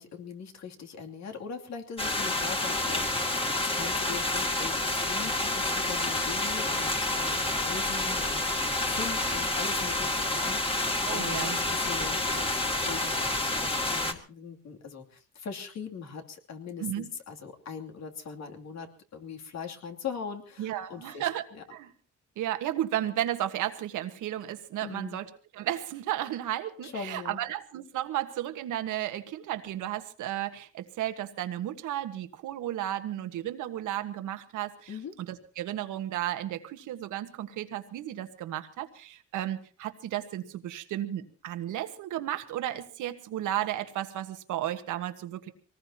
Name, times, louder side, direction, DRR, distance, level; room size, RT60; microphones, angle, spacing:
voice 1, 0.0-21.6 24.8-25.2 26.8-27.4 34.9-35.1, left 6 dB, 60° left, 3 dB, 2.8 m, -41 dB
sound 1, 2.0-14.1, left 2 dB, 20° left, 2.5 m, -29 dB
voice 2, 11.0-11.6 16.8-17.1 20.6-21.4 21.7-21.9 22.4-34.9 35.2-45.5, right 12 dB, 85° right, 9 dB, 1.6 m, -33 dB
24.5 x 19.0 x 2.9 m, 0.36 s
cardioid pair, 90°, 30 cm